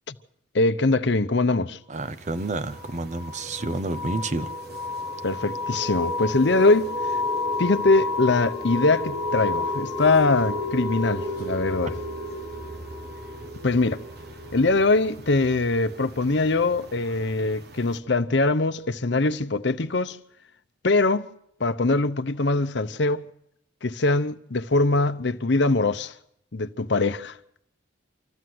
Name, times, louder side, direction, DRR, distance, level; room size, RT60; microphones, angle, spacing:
voice 1, 0.5-1.8 5.2-6.9 7.6-11.9 13.6-14.0 14.5-20.2 20.8-21.3 21.6-23.3 23.8-26.2 26.5-27.4, left 3 dB, 60° left, 0.8 m, -22 dB
voice 2, 1.9-4.5, right 2 dB, 35° right, 0.7 m, -29 dB
sound 1, 1.9-18.0, right 2 dB, 50° right, 1.4 m, -47 dB
sound 2, 2.7-17.2, left 3 dB, 10° right, 1.3 m, -31 dB
25.5 x 14.5 x 7.8 m
head